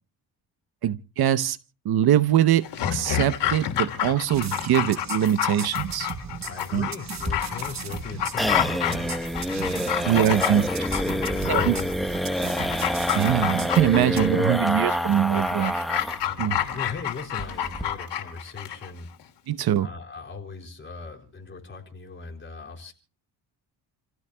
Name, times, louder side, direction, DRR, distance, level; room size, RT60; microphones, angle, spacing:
voice 1, 0.8-1.6 1.8-6.1 6.7-6.9 10.1-10.7 11.5-11.8 13.2-15.8 16.4-16.6 19.5-19.9, right 11 dB, 60° right, 0.9 m, -22 dB
Dog, 2.6-18.9 19.2-19.3, left 11 dB, 75° left, 2.8 m, -29 dB
sound 1, 4.3-14.3, right 6 dB, 40° right, 1.2 m, -37 dB
voice 2, 6.4-9.3 9.8-11.8 13.8-14.4 16.2-19.1 19.8-22.9, left 4 dB, 30° left, 4.1 m, -39 dB
sound 2, 7.2-16.3 16.6-16.7 17.0-17.1 17.4-17.8, equal, ahead, 1.2 m, -27 dB
30.0 x 16.0 x 2.2 m
cardioid pair, 100°, 42 cm